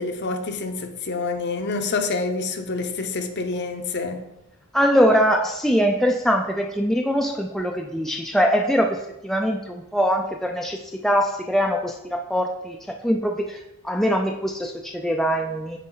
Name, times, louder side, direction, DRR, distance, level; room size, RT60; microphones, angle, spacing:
voice 1, 0.0-4.3, left 3 dB, 50° left, 0.8 m, -27 dB
voice 2, 4.7-9.0 9.2-12.8 13.0-13.6 13.8-15.8, equal, ahead, 0.4 m, -22 dB
9.2 x 4.1 x 3.9 m
head